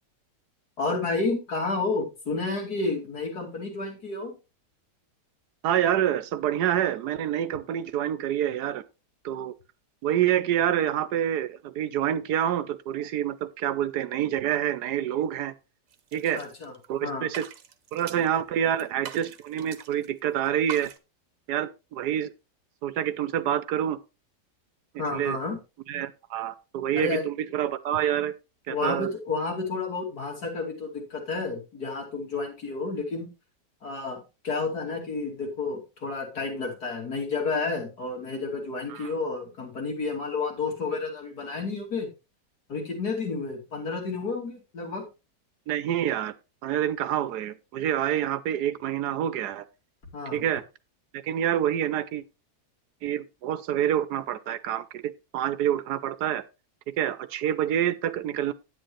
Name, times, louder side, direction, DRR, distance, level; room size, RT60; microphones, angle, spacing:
voice 1, 0.8-4.3 16.3-16.7 17.0-17.3 25.0-25.6 27.0-27.3 28.7-33.3 33.8-42.1 42.7-45.1 50.1-50.5, left 3 dB, 70° left, 3.3 m, -31 dB
voice 2, 5.6-8.8 9.2-9.5 10.0-15.5 16.1-16.4 16.9-17.4 17.9-20.9 21.5-22.3 22.8-24.0 25.1-25.4 25.9-28.3 28.7-29.1 38.9-39.1 45.7-46.3 46.6-49.6 50.3-50.6 51.1-52.2 53.0-56.4 56.9-58.5, right 10 dB, 80° right, 1.2 m, -27 dB
sound 1, 15.9-16.9 17.2-18.4 18.8-20.1 20.4-21.0, right 8 dB, 60° right, 1.3 m, -42 dB
10.5 x 8.9 x 3.1 m
omnidirectional pair, 1.8 m